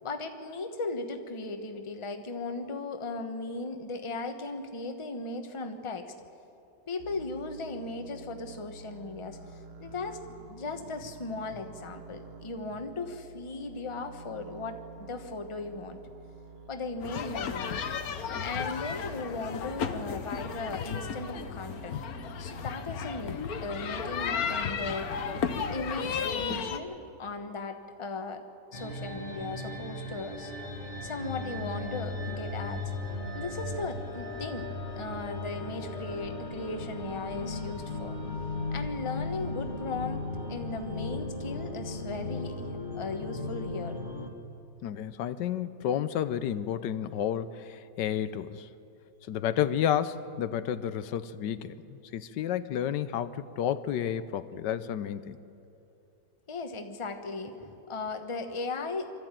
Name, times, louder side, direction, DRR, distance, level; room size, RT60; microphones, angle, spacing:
voice 1, 0.0-6.1 6.9-16.0 16.7-17.9 18.4-22.0 22.4-25.1 25.7-28.4 28.7-30.5 31.0-32.9 33.3-34.7 34.9-38.2 38.7-44.0 56.5-59.1, left 3 dB, 20° left, 6 dB, 1.0 m, -37 dB
sound 1, 7.0-26.0, right 4 dB, 45° right, 0.9 m, -49 dB
sound 2, 17.0-26.8, left 7 dB, 60° left, 1.3 m, -34 dB
sound 3, 28.7-44.3, left 2 dB, 40° left, 1.8 m, -36 dB
voice 2, 44.8-48.7 49.3-55.4, left 10 dB, 80° left, 13 dB, 1.3 m, -31 dB
24.0 x 13.0 x 8.9 m, 2.8 s
omnidirectional pair, 1.9 m